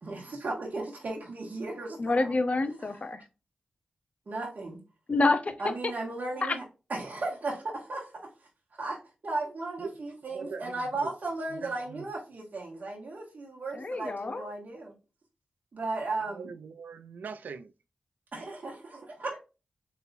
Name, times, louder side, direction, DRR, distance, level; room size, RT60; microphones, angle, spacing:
voice 1, 0.0-2.3 2.8-3.0 4.3-4.8 5.6-6.6 6.9-8.1 8.8-14.9 15.7-16.5 18.3-19.4, right 2 dB, 65° right, 1.7 m, -35 dB
voice 2, 2.0-3.2 5.1-5.5 6.4-6.6 13.7-14.5, left 3 dB, 50° left, 0.8 m, -27 dB
voice 3, 10.3-11.1 11.5-12.1 16.2-17.7, right 5 dB, 80° right, 0.4 m, -42 dB
4.0 x 3.8 x 2.7 m
cardioid pair, 45°, 3 cm